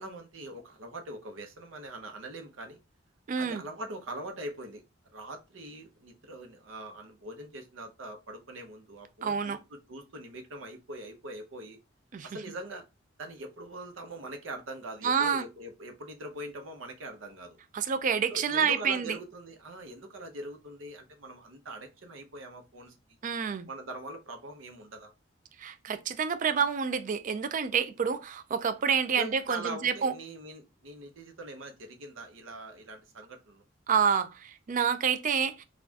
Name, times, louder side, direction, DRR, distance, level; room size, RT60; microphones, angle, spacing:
voice 1, 0.0-2.8 3.4-4.8 5.1-11.8 12.2-12.8 13.2-17.6 18.3-22.9 23.7-25.1 29.2-33.6, right 1 dB, 90° right, 0.8 m, -42 dB
voice 2, 3.3-3.6 9.2-9.6 12.1-12.3 15.0-15.4 17.7-19.2 23.2-23.7 25.6-30.1 33.9-35.6, right 6 dB, 45° right, 0.4 m, -28 dB
4.1 x 2.4 x 2.7 m
head